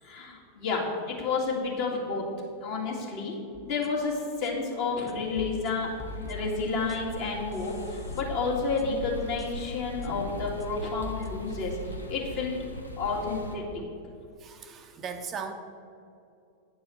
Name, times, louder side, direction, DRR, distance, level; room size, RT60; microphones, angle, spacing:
voice 1, 0.0-2.3 2.6-3.4 3.6-12.6 13.0-13.6, left 4 dB, 45° left, -2 dB, 2.2 m, -30 dB
sound 1, 3.5-4.0 4.4-4.5 5.1-7.2 7.5-9.1 9.4-9.5 10.0-10.1 10.4-11.8, left 4 dB, 20° left, 0.7 m, -43 dB
sound 2, 4.8-13.6, left 1 dB, 85° left, 0.9 m, -40 dB
voice 2, 14.4-15.5, right 6 dB, 25° right, 6 dB, 0.6 m, -38 dB
9.1 x 4.6 x 7.7 m, 2.5 s
figure-of-eight pair, 90°, 0 cm